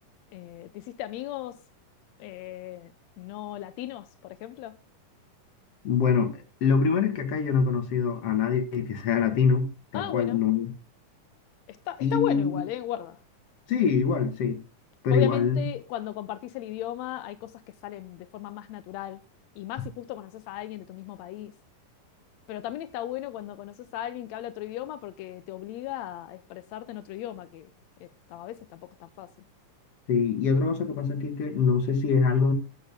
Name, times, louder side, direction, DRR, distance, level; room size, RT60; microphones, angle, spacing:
voice 1, 0.3-1.6 2.2-4.8 9.9-10.4 11.7-13.2 15.1-19.2 19.5-21.5 22.5-27.7 28.0-29.3, left 13 dB, 80° left, 1.6 m, -36 dB
voice 2, 5.8-9.7 9.9-10.7 12.0-12.6 13.7-14.6 15.0-15.7 30.1-32.5, left 6 dB, 50° left, 2.5 m, -24 dB
13.0 x 7.9 x 3.5 m
omnidirectional pair, 3.8 m